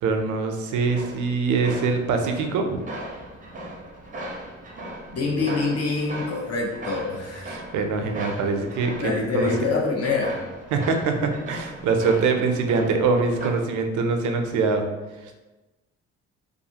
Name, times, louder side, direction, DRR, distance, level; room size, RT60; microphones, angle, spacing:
voice 1, 0.0-2.8 7.5-9.7 10.7-14.8, right 4 dB, 75° right, 5 dB, 0.5 m, -24 dB
sound 1, 0.8-13.5, right 1 dB, 25° right, 0.5 m, -38 dB
voice 2, 5.1-7.6 9.0-10.4, left 3 dB, 55° left, -2 dB, 0.7 m, -25 dB
2.5 x 2.4 x 2.8 m, 1.2 s
cardioid pair, 90°, 30 cm